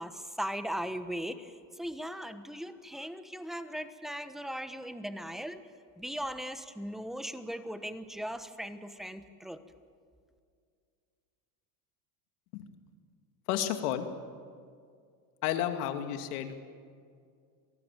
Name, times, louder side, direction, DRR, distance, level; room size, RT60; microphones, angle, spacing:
voice 1, 0.0-5.6 6.0-9.6, equal, ahead, 10 dB, 1.1 m, -38 dB
voice 2, 13.5-14.1 15.4-16.6, left 11 dB, 80° left, 7 dB, 2.5 m, -31 dB
27.5 x 19.0 x 9.1 m, 2.2 s
supercardioid pair, 135°, 45 cm